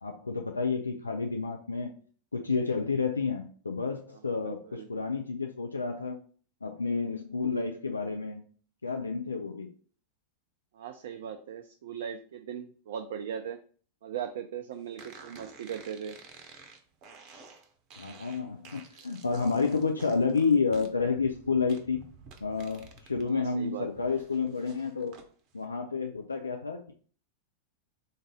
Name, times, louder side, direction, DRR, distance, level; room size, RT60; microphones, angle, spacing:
voice 1, 0.0-1.9 2.3-6.2 6.6-8.4 8.8-9.7 18.0-22.0 22.4-25.2 25.5-26.9, left 4 dB, 75° left, 4 dB, 0.3 m, -30 dB
voice 2, 4.4-4.9 10.7-13.6 14.0-16.2 23.3-24.0, right 8 dB, 60° right, 6 dB, 0.3 m, -39 dB
sound 1, 15.0-23.3 23.6-25.3, right 4 dB, 40° right, 0.7 m, -51 dB
3.8 x 2.6 x 3.6 m, 0.43 s
figure-of-eight pair, 90°, 0 cm